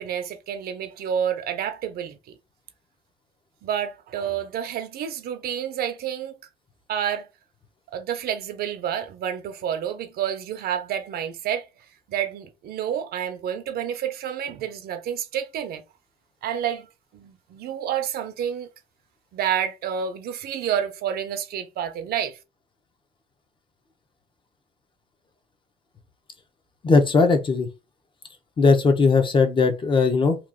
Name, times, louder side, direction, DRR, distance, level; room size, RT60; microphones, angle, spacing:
voice 1, 0.0-2.2 3.6-6.4 6.9-7.3 7.9-11.7 12.1-15.8 16.4-16.9 17.1-18.7 19.3-22.4, right 9 dB, 65° right, 0.7 m, -29 dB
voice 2, 26.8-27.7 28.6-30.4, left 4 dB, 30° left, 0.9 m, -18 dB
3.0 x 2.5 x 3.8 m
cardioid pair, 110°, 17 cm